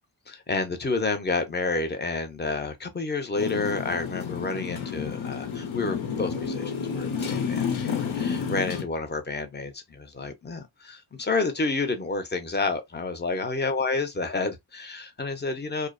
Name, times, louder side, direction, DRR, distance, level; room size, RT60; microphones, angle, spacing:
voice 1, 0.3-15.9, left 3 dB, 20° left, 0.6 m, -30 dB
Motorcycle, 3.4-8.8, left 7 dB, 75° left, 0.7 m, -30 dB
2.5 x 2.0 x 2.4 m
wide cardioid pair, 65°, 48 cm